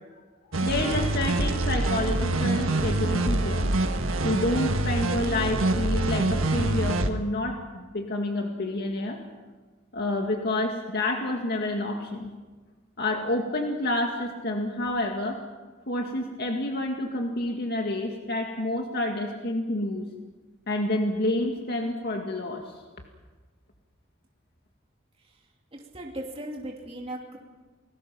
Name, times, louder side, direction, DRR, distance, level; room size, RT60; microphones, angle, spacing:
sound 1, 0.5-7.1, right 2 dB, 80° right, 1.5 m, -25 dB
voice 1, 0.6-3.7 4.2-9.2 9.9-12.3 13.0-15.4 15.9-20.1 20.7-22.7, left 1 dB, 55° left, 2 dB, 2.0 m, -29 dB
voice 2, 25.7-27.4, right 1 dB, 30° right, -1 dB, 2.8 m, -37 dB
29.0 x 19.5 x 5.9 m, 1.3 s
head